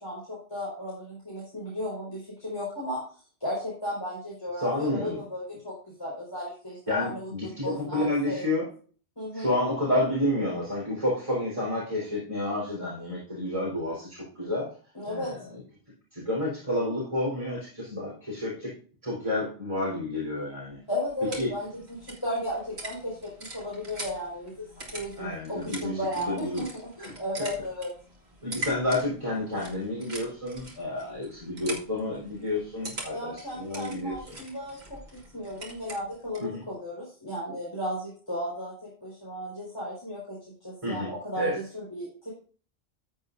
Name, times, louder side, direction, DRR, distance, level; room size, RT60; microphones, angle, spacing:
voice 1, 0.0-3.0 3.4-7.3 7.6-8.4 9.2-9.5 14.9-15.3 20.9-27.9 33.1-35.0 35.3-42.4, equal, 25° left, -7 dB, 5.0 m, -35 dB
voice 2, 4.6-5.2 6.9-8.7 9.3-14.7 15.1-15.4 16.1-18.7 19.0-20.8 21.4-21.5 25.2-26.7 27.0-27.1 28.4-34.4 36.4-36.6 40.8-41.6, left 1 dB, 30° right, -6 dB, 4.5 m, -30 dB
sound 1, 20.7-36.5, right 2 dB, 85° right, 2.6 m, -43 dB
14.5 x 8.3 x 2.7 m, 0.41 s
omnidirectional pair, 1.1 m